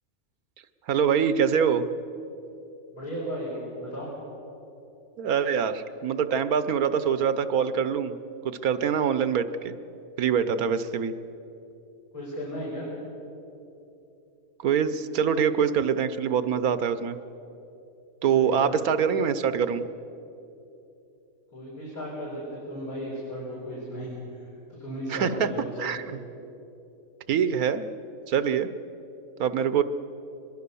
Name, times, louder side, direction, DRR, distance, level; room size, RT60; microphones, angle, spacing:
voice 1, 0.9-1.8 5.2-8.2 8.4-9.7 10.2-11.1 14.6-17.2 18.2-19.9 25.1-25.5 25.8-26.2 27.3-27.8 28.3-28.7 29.4-29.8, right 7 dB, 80° right, 12 dB, 1.4 m, -24 dB
voice 2, 2.9-4.1 12.1-12.9 18.3-18.7 19.1-19.2 21.5-24.1 24.7-25.9, equal, 75° left, -7 dB, 6.1 m, -35 dB
24.0 x 21.5 x 7.0 m, 2.9 s
omnidirectional pair, 1.5 m